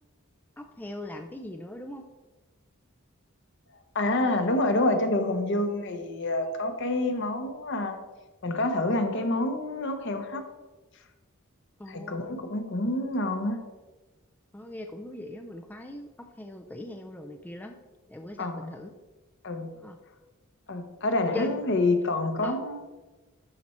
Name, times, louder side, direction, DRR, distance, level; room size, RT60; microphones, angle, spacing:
voice 1, 0.6-2.0 11.8-12.3 14.5-16.1 16.4-17.7 18.1-18.9 19.8-20.0 21.3-21.6 22.4-22.6, left 1 dB, 10° left, 4 dB, 0.4 m, -40 dB
voice 2, 3.9-8.0 8.4-10.4 11.9-13.6 18.4-18.7 19.4-19.7 20.7-22.8, left 2 dB, 55° left, 7 dB, 0.9 m, -27 dB
12.0 x 4.5 x 4.2 m, 1.2 s
head